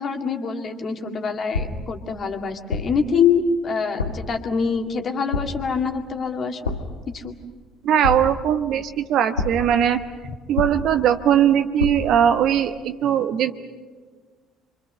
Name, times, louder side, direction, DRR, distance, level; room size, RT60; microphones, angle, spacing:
voice 1, 0.0-6.7 7.1-7.3, left 6 dB, 40° left, 4 dB, 2.2 m, -25 dB
sound 1, 1.5-2.0 2.7-3.1 4.0-4.4 5.3-5.8 6.6-7.1 8.0-8.6 9.4-9.8 10.6-11.1 11.8-12.2, left 3 dB, 85° left, 1.2 m, -28 dB
voice 2, 7.8-10.0 10.5-13.5, right 9 dB, 55° right, 9 dB, 1.1 m, -20 dB
28.0 x 24.5 x 6.7 m, 1.4 s
figure-of-eight pair, 55°, 0 cm